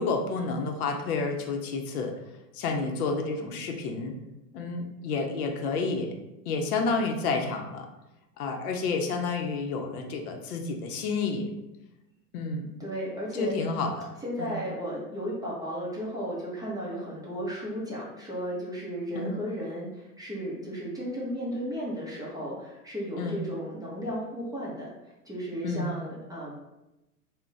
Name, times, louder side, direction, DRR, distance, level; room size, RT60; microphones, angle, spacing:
voice 1, 0.0-2.1 2.5-4.1 4.5-6.1 6.5-7.9 8.4-11.5 12.3-12.7 13.3-14.1 14.4-14.5 19.2-19.3 23.2-23.4 25.6-25.9, left 4 dB, 70° left, 3 dB, 0.6 m, -30 dB
voice 2, 12.8-13.5 14.2-24.9 25.2-26.5, equal, 10° right, -6 dB, 0.5 m, -34 dB
2.3 x 2.1 x 3.8 m, 0.96 s
hypercardioid pair, 105°, 46 cm